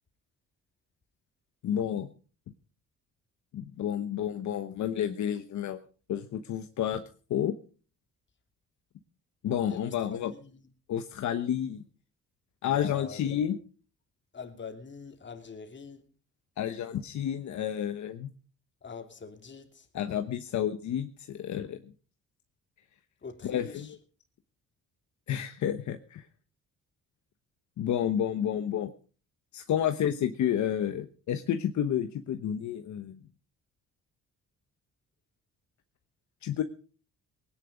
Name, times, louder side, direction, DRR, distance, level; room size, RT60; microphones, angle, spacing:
voice 1, 1.6-2.1 3.5-5.8 6.1-7.0 7.3-7.5 9.4-10.3 10.9-11.8 12.6-13.6 16.6-18.3 19.9-21.8 23.4-24.0 25.3-26.2 27.8-28.9 29.5-33.2 36.4-36.6, left 10 dB, 70° left, 1.1 m, -30 dB
voice 2, 9.7-10.6 12.6-13.4 14.3-16.1 18.8-19.9 23.2-23.9, left 5 dB, 40° left, 2.8 m, -44 dB
19.0 x 10.0 x 5.2 m
cardioid pair, 90°, 30 cm